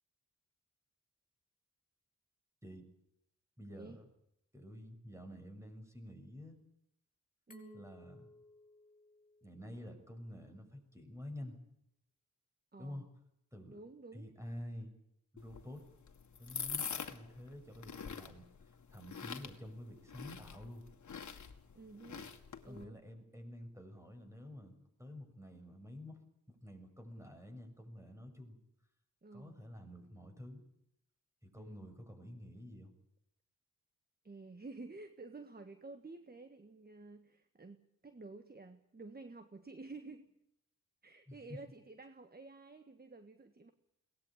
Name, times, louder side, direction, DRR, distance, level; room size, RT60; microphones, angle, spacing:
voice 1, 3.6-4.1 4.5-6.6 7.7-8.3 9.4-11.6 12.8-13.0 13.5-13.8 14.1-14.9 15.3-15.8 16.4-20.8 22.6-26.2 26.5-28.6 29.3-30.6 31.4-32.9 41.3-41.6, left 1 dB, 10° right, 6 dB, 6.7 m, -49 dB
Glass, 7.5-10.3, left 2 dB, 25° left, 6.2 m, -62 dB
voice 2, 7.5-7.9 12.7-13.1 13.7-14.3 21.7-22.3 22.6-23.0 29.2-29.6 31.6-31.9 34.2-40.3 41.0-43.7, right 3 dB, 30° right, 9 dB, 1.6 m, -51 dB
sound 1, 15.4-22.8, left 6 dB, 65° left, 2.1 m, -45 dB
22.5 x 19.5 x 8.9 m, 0.78 s
cardioid pair, 70°, 32 cm